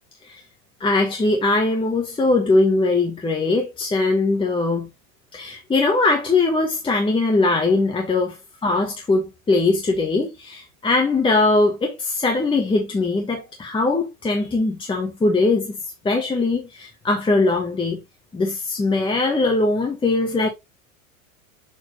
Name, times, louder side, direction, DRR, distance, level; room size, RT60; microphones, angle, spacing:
voice 1, 0.8-4.9 5.3-8.4 8.6-15.8 16.0-18.0 18.3-20.5, left 3 dB, 10° left, 1.4 m, -21 dB
6.8 x 4.5 x 3.1 m
hypercardioid pair, 115°, 42 cm